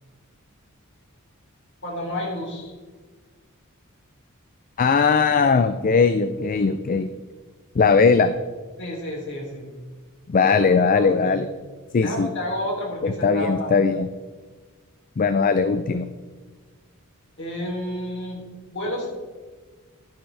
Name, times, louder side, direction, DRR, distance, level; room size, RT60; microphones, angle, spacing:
voice 1, 1.8-2.7 8.8-9.7 10.4-10.6 10.9-11.4 12.0-13.7 17.4-19.1, left 1 dB, 55° left, -1 dB, 3.2 m, -30 dB
voice 2, 4.8-7.1 7.8-8.3 10.3-11.5 11.9-12.3 13.0-14.1 15.2-16.1, left 5 dB, 40° left, 11 dB, 0.4 m, -19 dB
11.5 x 10.0 x 3.4 m, 1.4 s
head